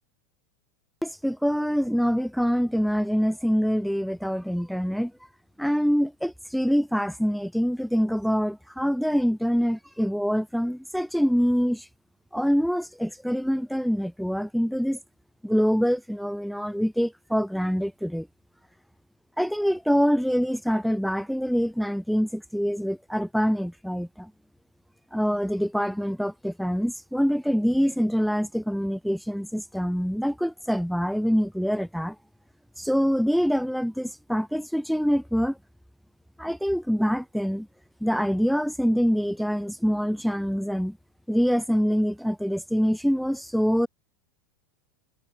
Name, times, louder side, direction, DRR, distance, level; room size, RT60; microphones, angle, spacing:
voice 1, 1.0-5.1 5.6-11.9 12.3-15.0 15.4-18.3 19.4-24.3 25.1-32.2 32.8-35.6 36.4-37.7 38.0-41.0 41.3-43.9, equal, ahead, 3.7 m, -25 dB
hypercardioid pair, 100°, 11 cm